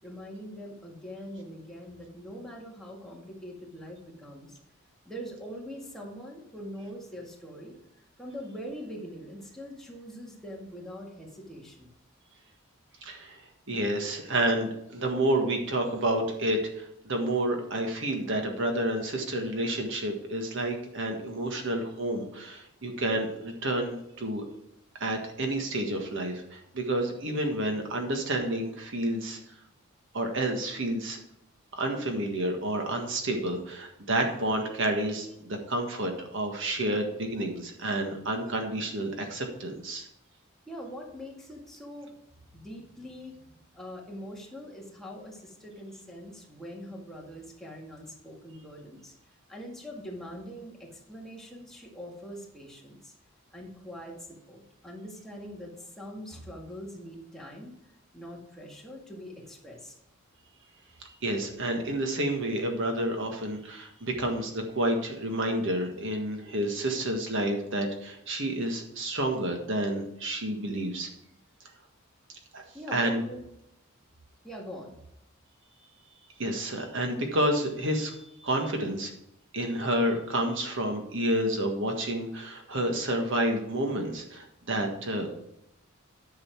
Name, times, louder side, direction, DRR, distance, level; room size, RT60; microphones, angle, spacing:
voice 1, 0.0-4.6 5.1-7.8 8.2-11.9 40.7-42.1 42.5-49.1 49.5-53.1 53.5-57.8 58.1-60.0 72.7-73.4 74.4-74.9, equal, ahead, -2 dB, 1.9 m, -43 dB
voice 2, 13.0-13.4 13.7-24.4 25.0-29.4 30.1-31.2 31.7-40.1 61.2-71.1 72.5-72.6 72.9-73.2 76.4-78.2 78.4-79.1 79.5-85.4, right 1 dB, 65° right, 3 dB, 1.6 m, -29 dB
10.5 x 6.6 x 4.6 m, 0.81 s
head